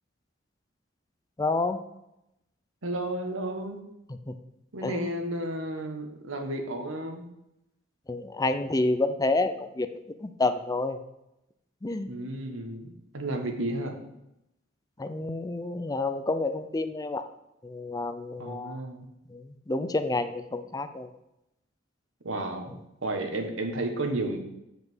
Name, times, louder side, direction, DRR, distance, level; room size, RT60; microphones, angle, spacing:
voice 1, 1.4-1.8 4.3-4.4 4.8-5.1 8.1-9.9 10.2-11.0 11.8-12.1 15.0-17.2 17.6-18.8 19.3-21.1, left 2 dB, 20° left, 9 dB, 0.5 m, -29 dB
voice 2, 2.8-3.8 4.7-7.2 12.1-14.0 18.4-19.1 22.2-24.4, right 1 dB, 85° right, 4 dB, 1.3 m, -32 dB
7.4 x 5.1 x 6.2 m, 0.86 s
head